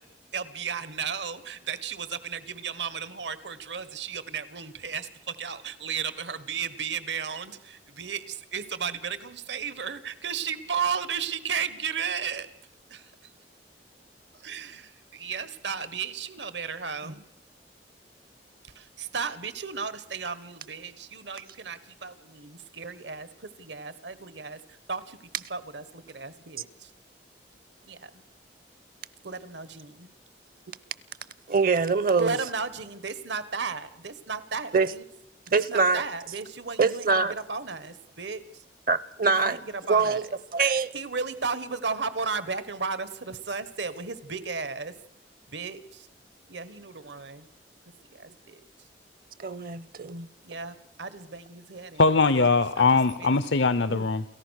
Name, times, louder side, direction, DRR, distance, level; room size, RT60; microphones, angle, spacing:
voice 1, 0.3-12.5 12.9-13.0 14.4-17.2 18.7-23.3 23.6-24.6 24.9-25.2 25.5-26.7 27.9-28.1 29.2-30.1 32.2-35.0 35.5-38.4 39.4-39.6 39.9-40.2 40.9-44.9 45.5-45.8 46.5-47.5 48.2-48.6 50.4-52.0 52.3-52.9 53.2-53.4, right 5 dB, 80° right, 1.5 m, -34 dB
voice 2, 31.5-32.4 34.7-34.9 35.5-36.0 36.8-37.3 38.9-39.6 39.9-40.3 40.5-40.9 49.4-50.3 53.9-54.0, right 4 dB, 50° right, 0.8 m, -24 dB
voice 3, 52.0-54.2, left 4 dB, 80° left, 0.8 m, -21 dB
29.0 x 14.5 x 6.5 m
head